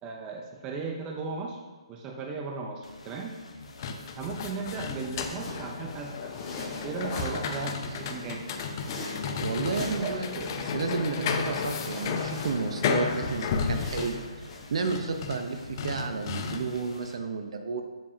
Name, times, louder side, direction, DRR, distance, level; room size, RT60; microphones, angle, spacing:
voice 1, 0.0-1.6 1.9-3.4 4.2-6.3 6.8-8.4 10.0-10.7, right 4 dB, 20° right, 2 dB, 0.6 m, -36 dB
sound 1, 2.8-17.2, left 2 dB, 90° left, 1.1 m, -47 dB
sound 2, 3.6-16.9, left 6 dB, 35° left, 0.6 m, -33 dB
sound 3, 4.1-16.6, left 2 dB, 20° left, 1.3 m, -42 dB
voice 2, 9.4-17.8, right 4 dB, 60° right, 6 dB, 0.8 m, -32 dB
7.5 x 6.9 x 2.8 m, 1.3 s
hypercardioid pair, 155°, 3 cm